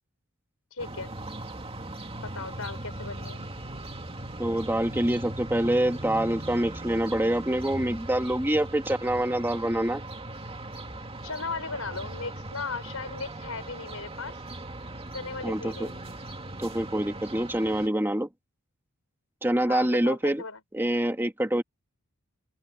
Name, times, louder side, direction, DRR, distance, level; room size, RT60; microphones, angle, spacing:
voice 1, 0.7-1.1 2.2-3.5 11.2-14.4 15.1-16.0 19.7-20.6, left 4 dB, 75° left, 5.5 m, -37 dB
sound 1, 0.8-17.9, right 1 dB, 25° right, 2.4 m, -39 dB
voice 2, 4.4-10.0 15.4-15.9 16.6-18.3 19.4-20.4 20.7-21.6, right 1 dB, 10° right, 1.6 m, -26 dB
open air
head